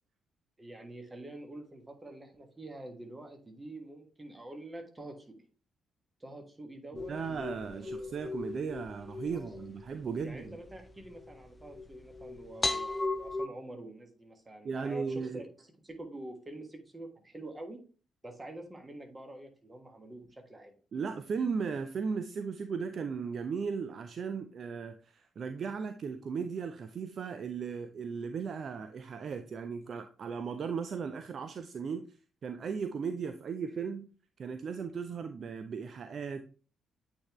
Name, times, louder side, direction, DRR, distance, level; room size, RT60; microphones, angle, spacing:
voice 1, 0.6-5.4 6.2-8.1 9.3-9.6 10.2-17.8 18.2-20.7, right 1 dB, 20° right, 4 dB, 1.4 m, -47 dB
sound 1, 6.9-13.5, left 2 dB, 20° left, 0.5 m, -38 dB
voice 2, 7.1-10.6 14.6-15.4 20.9-32.1 32.4-34.1 34.4-36.5, right 5 dB, 45° right, 9 dB, 0.4 m, -36 dB
8.5 x 3.6 x 3.0 m, 0.38 s
figure-of-eight pair, 40°, 0 cm